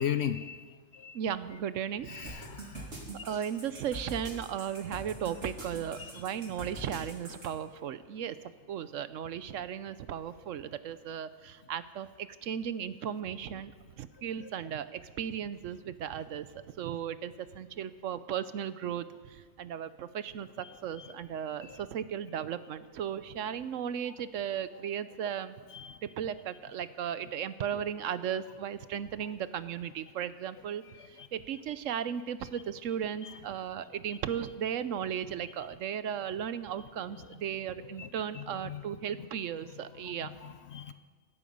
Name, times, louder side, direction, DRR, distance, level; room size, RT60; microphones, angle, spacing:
voice 1, 0.0-1.2 2.1-2.8 6.0-6.2 14.4-14.5 20.6-21.1 21.6-21.8 24.1-24.2 25.7-26.0 30.9-31.3 33.2-33.4 38.0-38.1 38.3-38.8 40.2-40.9, left 9 dB, 60° left, 11 dB, 0.8 m, -38 dB
voice 2, 1.1-2.3 3.2-8.4 8.7-16.5 16.8-25.6 26.0-30.8 31.1-40.3, right 9 dB, 70° right, 14 dB, 1.0 m, -36 dB
sound 1, 2.3-7.5, right 1 dB, 55° right, 3.1 m, -43 dB
17.0 x 13.5 x 5.4 m, 1.4 s
omnidirectional pair, 1.5 m